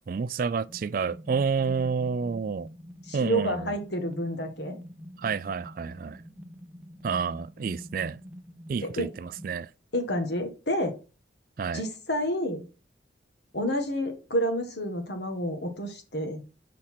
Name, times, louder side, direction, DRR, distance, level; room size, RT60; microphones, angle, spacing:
voice 1, 0.0-2.7 3.1-3.7 5.2-6.2 7.0-8.2 8.7-9.7 11.6-11.8, right 5 dB, 50° right, 0.3 m, -29 dB
sound 1, 0.7-9.6, equal, 5° right, 0.9 m, -46 dB
voice 2, 3.1-4.8 8.8-9.1 9.9-10.9 11.7-12.7 13.5-16.4, equal, 65° left, 1.7 m, -29 dB
6.5 x 4.2 x 5.8 m
head